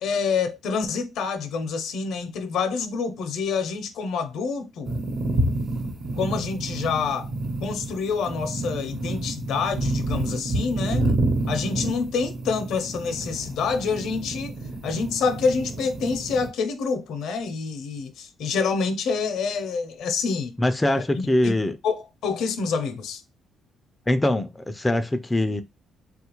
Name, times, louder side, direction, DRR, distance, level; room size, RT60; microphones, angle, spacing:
voice 1, 0.0-5.0 6.2-7.3 7.6-11.0 11.5-14.5 14.8-20.6 20.9-21.0 21.4-21.5 21.8-23.2, left 5 dB, 75° left, 0.5 m, -27 dB
sound 1, 4.8-16.5, right 2 dB, 45° right, 1.0 m, -28 dB
voice 2, 20.6-21.8 24.1-25.6, left 1 dB, 15° left, 0.3 m, -23 dB
3.4 x 2.3 x 2.9 m
cardioid pair, 105°, 0 cm